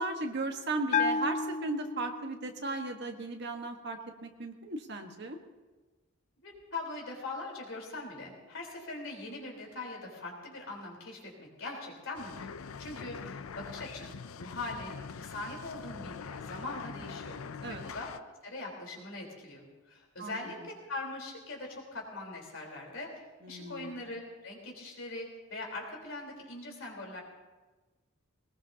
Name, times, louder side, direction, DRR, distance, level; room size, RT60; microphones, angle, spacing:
voice 1, 0.0-5.4 17.6-17.8 20.2-20.5 23.4-23.9, right 2 dB, 55° right, 4 dB, 1.5 m, -36 dB
Bell, 0.9-2.5, left 5 dB, 35° left, 0.5 m, -31 dB
voice 2, 6.4-12.5 12.8-17.4 17.7-18.1 18.4-27.2, left 2 dB, 65° left, -1 dB, 4.0 m, -42 dB
sound 1, 12.2-18.2, left 5 dB, 85° left, 0.5 m, -43 dB
21.0 x 19.5 x 2.9 m, 1.3 s
head